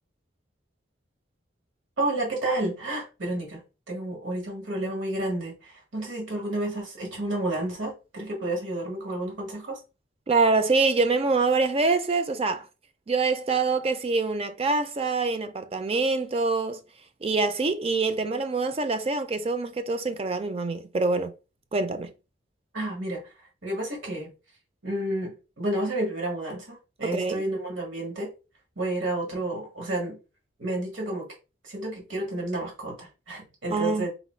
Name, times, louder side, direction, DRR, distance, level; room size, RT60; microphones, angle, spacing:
voice 1, 2.0-9.8 22.7-23.3 23.6-24.3 24.8-28.3 28.7-30.2 30.6-31.3 31.6-34.1, right 1 dB, 85° right, 1.7 m, -31 dB
voice 2, 10.3-12.7 13.1-16.8 17.2-21.3 21.7-22.1 27.0-27.5 33.7-34.1, right 3 dB, 30° right, 0.4 m, -25 dB
4.0 x 2.2 x 4.3 m
head